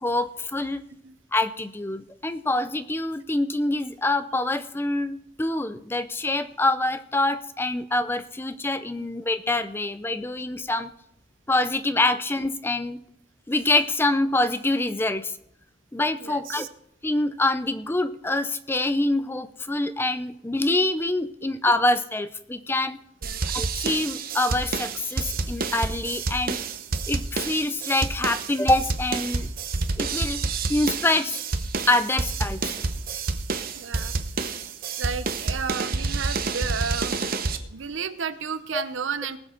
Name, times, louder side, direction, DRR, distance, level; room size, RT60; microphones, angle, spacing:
voice 1, 0.0-0.8 1.3-10.9 11.5-13.0 13.5-15.4 15.9-16.7 17.0-23.0 23.5-26.6 27.1-29.5 30.0-30.4 30.7-31.4 31.9-32.8 38.7-38.8, left 2 dB, 10° left, 12 dB, 0.4 m, -25 dB
voice 2, 16.2-16.7 23.2-23.5 33.8-34.1 35.0-37.2 37.6-39.4, right 6 dB, 85° right, 13 dB, 0.8 m, -32 dB
sound 1, 23.2-37.6, right 4 dB, 50° right, 0.8 m, -28 dB
19.5 x 7.3 x 4.4 m, 0.73 s
head